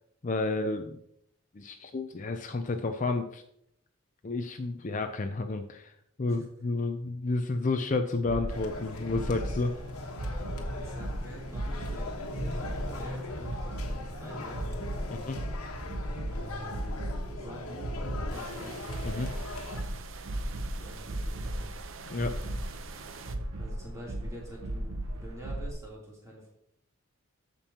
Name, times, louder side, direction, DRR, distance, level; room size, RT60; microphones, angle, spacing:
voice 1, 0.2-1.0 1.6-3.4 4.2-5.9 6.2-9.7 15.1-15.4 19.0-19.3 22.1-22.3, left 3 dB, 35° left, 7 dB, 0.5 m, -31 dB
sound 1, 8.3-25.7, right 1 dB, 85° right, 1.0 m, -37 dB
sound 2, 8.5-19.8, left 2 dB, 90° left, 1.3 m, -40 dB
voice 2, 10.5-15.3 16.3-18.7 20.7-21.7 23.5-26.5, right 1 dB, 15° right, -5 dB, 3.2 m, -47 dB
sound 3, 18.3-23.4, right 5 dB, 65° right, 0.7 m, -47 dB
14.0 x 5.3 x 2.9 m, 0.73 s
head